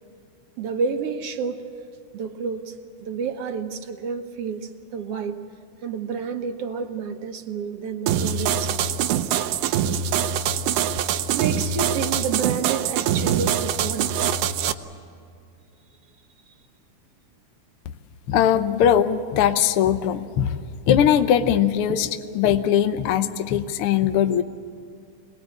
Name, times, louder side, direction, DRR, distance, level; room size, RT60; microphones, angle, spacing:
voice 1, 0.6-1.6 2.1-2.8 3.0-5.4 5.8-9.3 11.3-14.1, right 5 dB, 60° right, 7 dB, 1.9 m, -30 dB
sound 1, 8.1-14.7, right 8 dB, 90° right, 2.4 m, -24 dB
voice 2, 18.3-20.6 20.9-22.1 22.3-24.4, left 9 dB, 75° left, 9 dB, 1.3 m, -20 dB
26.0 x 20.5 x 8.4 m, 2.3 s
omnidirectional pair, 3.6 m